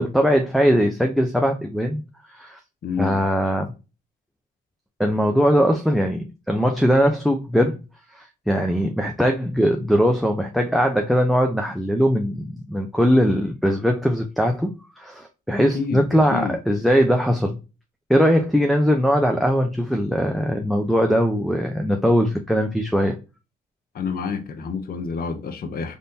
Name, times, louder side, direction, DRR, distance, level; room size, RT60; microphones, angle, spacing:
voice 1, 0.0-2.0 2.3-2.6 3.0-3.7 5.0-7.8 8.1-17.6 18.1-23.2, equal, ahead, 0.4 m, -20 dB
voice 2, 2.8-3.2 15.7-16.6 23.9-26.0, left 5 dB, 50° left, 0.7 m, -28 dB
3.5 x 2.6 x 2.6 m
cardioid pair, 90°, 20 cm